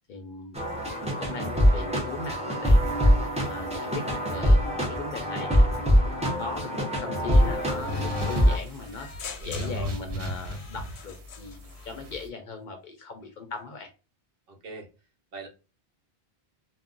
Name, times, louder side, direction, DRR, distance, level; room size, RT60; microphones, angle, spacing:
voice 1, 0.1-0.6 1.0-3.1 3.5-5.9 6.4-9.1 9.4-13.9, left 4 dB, 55° left, 5 dB, 0.6 m, -39 dB
sound 1, 0.5-8.6, equal, 10° right, 0.5 m, -23 dB
sound 2, 7.3-12.3, left 1 dB, 85° right, 1.0 m, -36 dB
sound 3, 7.9-11.9, left 7 dB, 90° left, 0.8 m, -45 dB
voice 2, 9.4-9.9 14.5-14.9 15.3-15.5, right 2 dB, 65° right, 2 dB, 0.9 m, -41 dB
2.3 x 2.1 x 3.7 m, 0.31 s
omnidirectional pair, 1.1 m